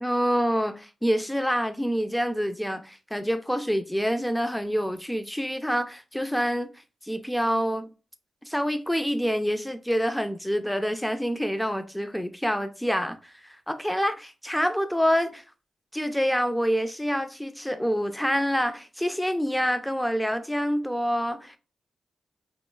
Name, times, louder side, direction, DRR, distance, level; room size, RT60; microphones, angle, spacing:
voice 1, 0.0-6.7 7.0-7.9 8.5-15.4 15.9-21.6, equal, 5° left, 0.4 m, -27 dB
2.9 x 2.1 x 2.3 m
cardioid pair, 60°, 0 cm